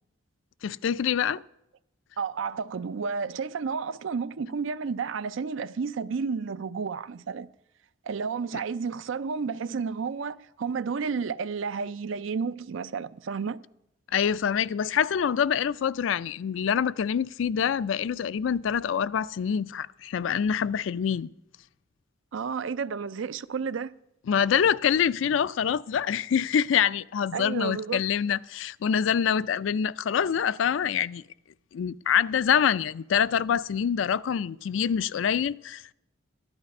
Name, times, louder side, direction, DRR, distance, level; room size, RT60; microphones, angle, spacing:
voice 1, 0.6-1.4 14.1-21.3 24.3-31.2 31.7-35.9, left 8 dB, 80° left, 0.4 m, -25 dB
voice 2, 2.2-7.5 8.1-13.6 22.3-23.9 27.3-28.0, right 5 dB, 80° right, 0.5 m, -31 dB
13.0 x 11.0 x 5.3 m
head